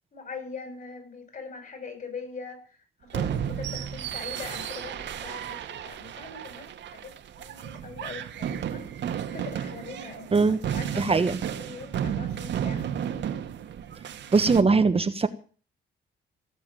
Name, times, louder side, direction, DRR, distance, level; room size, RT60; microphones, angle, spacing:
voice 1, 0.1-8.8 9.3-13.0, left 4 dB, 40° left, 6 dB, 6.9 m, -42 dB
Haikai No Ano, 3.1-14.6, right 9 dB, 65° right, 1.6 m, -33 dB
voice 2, 11.0-11.4 14.3-15.3, right 4 dB, 30° right, 9 dB, 1.2 m, -21 dB
17.0 x 7.4 x 9.1 m, 0.40 s
cardioid pair, 90°, 20 cm